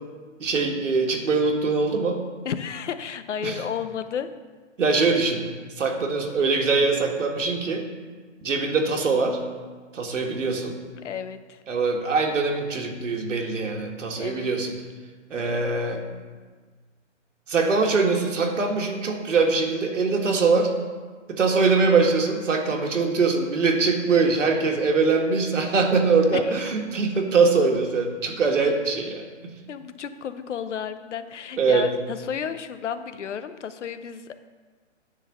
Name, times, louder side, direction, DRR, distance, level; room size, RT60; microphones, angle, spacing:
voice 1, 0.4-2.2 3.4-3.6 4.8-5.5 5.8-7.9 8.4-9.4 9.9-10.8 11.7-14.7 15.3-16.0 17.5-20.7 21.3-29.5 31.6-31.9, right 4 dB, 80° right, 2 dB, 1.6 m, -22 dB
voice 2, 2.4-4.3 11.0-11.6 14.2-14.5 15.3-15.6 26.3-26.7 29.7-34.4, left 7 dB, 70° left, 11 dB, 0.8 m, -32 dB
10.0 x 4.0 x 7.0 m, 1.4 s
hypercardioid pair, 165°, 37 cm